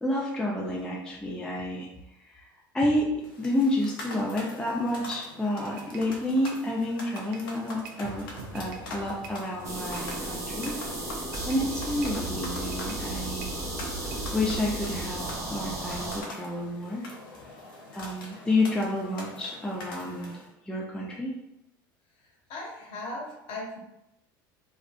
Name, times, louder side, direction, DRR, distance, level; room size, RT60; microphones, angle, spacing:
voice 1, 0.0-1.9 2.3-2.5 2.7-8.2 8.5-10.8 11.4-13.5 14.3-15.2 15.5-17.0 17.9-20.4 20.7-21.3, left 1 dB, 5° left, -3 dB, 0.4 m, -29 dB
sound 1, 3.2-20.5, left 2 dB, 80° left, 0.5 m, -44 dB
sound 2, 5.7-14.2, right 4 dB, 70° right, 0.4 m, -47 dB
sound 3, 9.6-16.2, right 1 dB, 30° right, 0.8 m, -34 dB
voice 2, 22.2-23.8, left 2 dB, 55° left, -3 dB, 0.9 m, -38 dB
2.5 x 2.1 x 2.4 m, 0.86 s
hypercardioid pair, 80°, 12 cm